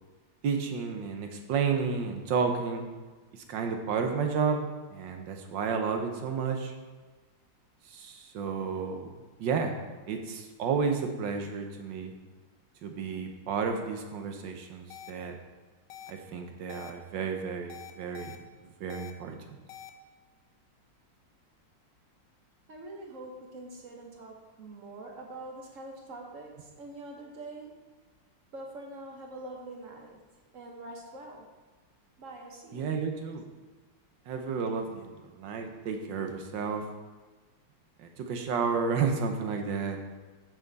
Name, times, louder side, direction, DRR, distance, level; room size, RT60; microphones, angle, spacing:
voice 1, 0.4-2.9 3.3-6.7 7.9-9.1 9.4-9.8 10.1-12.1 12.8-15.4 16.1-18.4 18.6-19.6 32.7-33.4 34.3-36.8 38.0-40.0, right 5 dB, 80° right, 4 dB, 1.6 m, -31 dB
sound 1, 14.9-15.1 15.9-16.1 16.7-16.9 17.7-18.4 18.9-19.1 19.7-19.9, left 11 dB, 75° left, 1.2 m, -45 dB
voice 2, 22.7-27.7 28.5-30.2 30.5-31.5 32.2-33.0, right 2 dB, 50° right, 1 dB, 1.3 m, -44 dB
8.4 x 6.6 x 4.0 m, 1.3 s
omnidirectional pair, 2.0 m